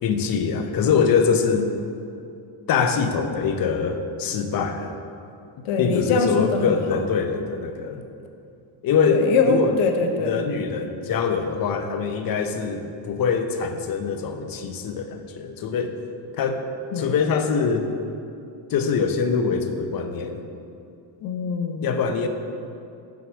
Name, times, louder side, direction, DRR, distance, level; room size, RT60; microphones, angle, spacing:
voice 1, 0.0-1.7 2.7-4.9 5.8-8.1 8.8-9.8 10.2-15.9 16.3-16.6 17.0-17.9 18.7-20.4 21.8-22.3, left 5 dB, 45° left, 7 dB, 0.7 m, -23 dB
voice 2, 5.6-7.0 9.1-10.4 16.9-17.1 21.2-21.9, left 4 dB, 70° left, 5 dB, 0.9 m, -23 dB
6.0 x 4.7 x 6.2 m, 2.6 s
cardioid pair, 105°, 50 cm